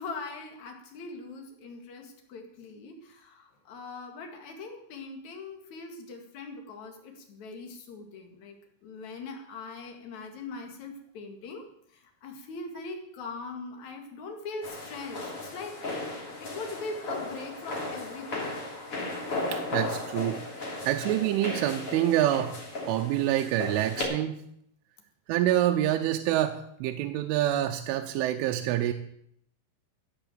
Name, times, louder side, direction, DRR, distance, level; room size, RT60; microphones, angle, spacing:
voice 1, 0.0-15.8 16.4-18.6, left 3 dB, 50° left, 4 dB, 2.5 m, -41 dB
sound 1, 14.6-24.0, left 2 dB, 30° left, 3.5 m, -36 dB
voice 2, 19.5-20.4 20.9-22.6 22.9-24.4 25.3-28.9, right 13 dB, 90° right, 4 dB, 3.2 m, -26 dB
15.5 x 7.9 x 7.6 m, 0.72 s
omnidirectional pair, 5.6 m